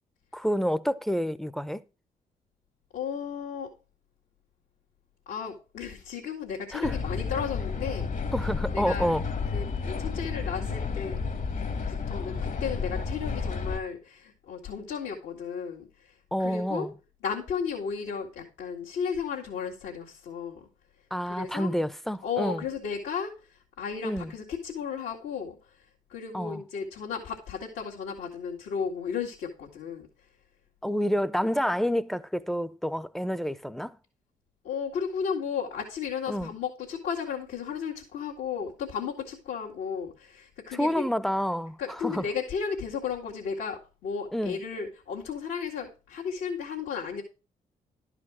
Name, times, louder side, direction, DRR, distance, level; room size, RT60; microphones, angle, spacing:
voice 1, 0.3-1.8 6.7-7.0 8.3-9.2 16.3-16.9 21.1-22.6 24.0-24.3 26.3-26.6 30.8-34.0 36.3-36.5 40.7-42.2 44.3-44.6, equal, ahead, 0.9 m, -28 dB
voice 2, 2.9-3.7 5.3-8.3 8.7-9.1 9.5-11.2 11.9-16.1 16.4-16.9 17.2-20.7 21.3-21.7 22.2-23.3 23.8-25.8 26.1-30.1 34.6-41.1 41.8-47.2, left 6 dB, 75° left, 2.1 m, -34 dB
sound 1, 6.8-13.8, left 5 dB, 50° left, 1.6 m, -31 dB
12.0 x 5.0 x 6.1 m
hypercardioid pair, 45°, 18 cm